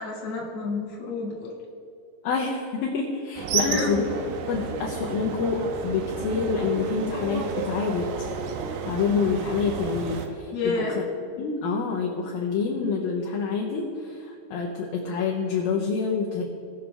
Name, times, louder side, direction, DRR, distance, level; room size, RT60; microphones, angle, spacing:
voice 1, 0.0-1.5 3.5-4.0 10.5-11.0, left 3 dB, 35° left, -4 dB, 2.5 m, -29 dB
voice 2, 2.2-4.0 4.5-8.3 8.8-10.9 11.4-16.4, left 5 dB, 70° left, -2 dB, 2.3 m, -27 dB
sound 1, 3.4-10.3, right 6 dB, 80° right, 3.0 m, -32 dB
19.5 x 6.6 x 3.4 m, 2.6 s
omnidirectional pair, 5.2 m